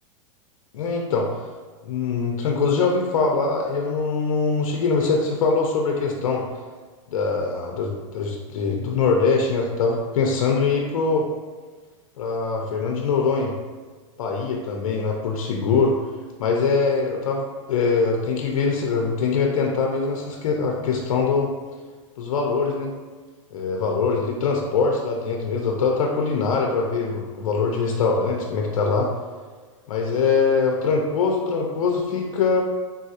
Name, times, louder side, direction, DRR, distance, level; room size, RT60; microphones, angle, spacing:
voice 1, 0.7-1.3 1.8-6.4 7.1-11.3 12.2-13.5 14.2-16.0 16.4-21.5 22.2-22.9 23.5-29.1 29.9-32.6, left 4 dB, 85° left, 0 dB, 0.5 m, -23 dB
3.5 x 2.3 x 2.7 m, 1.4 s
supercardioid pair, 145°, 17 cm